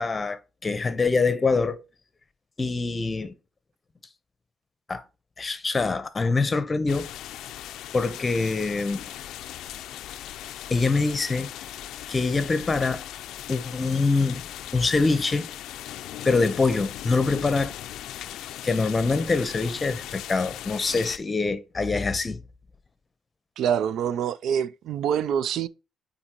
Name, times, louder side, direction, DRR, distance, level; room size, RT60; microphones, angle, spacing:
voice 1, 0.0-1.8 2.6-3.3 4.9-5.0 5.4-7.1 7.9-9.1 10.7-11.5 12.1-13.0 13.5-14.4 14.7-15.5 16.2-17.7 18.6-22.4, left 3 dB, 30° left, 0.9 m, -24 dB
sound 1, 6.9-21.2, left 12 dB, 85° left, 0.4 m, -38 dB
voice 2, 23.6-25.7, right 8 dB, 75° right, 0.4 m, -25 dB
8.6 x 4.1 x 3.0 m
cardioid pair, 90°, 0 cm